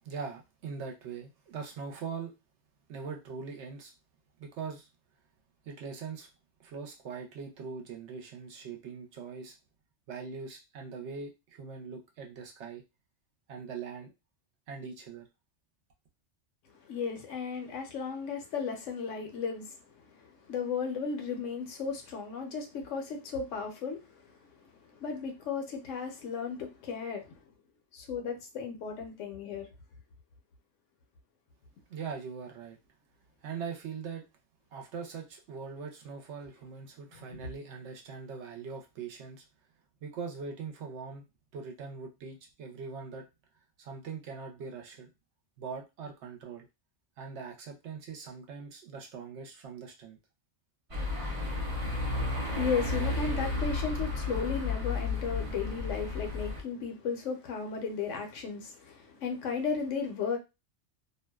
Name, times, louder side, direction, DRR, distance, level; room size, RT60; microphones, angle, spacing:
voice 1, 0.0-2.3 2.9-3.9 4.4-4.9 5.6-6.3 6.6-9.5 10.1-12.8 13.5-14.1 14.7-15.3 31.9-32.8 33.4-34.2 34.7-39.4 40.0-41.3 41.5-43.3 43.8-45.1 45.6-46.7 47.2-50.2, right 5 dB, 70° right, 0.9 m, -41 dB
voice 2, 16.7-19.8 20.0-27.4 27.9-29.7 52.5-60.4, left 5 dB, 80° left, 1.0 m, -35 dB
sound 1, 50.9-56.6, left 3 dB, 35° right, 0.6 m, -32 dB
2.6 x 2.2 x 2.2 m
omnidirectional pair, 1.2 m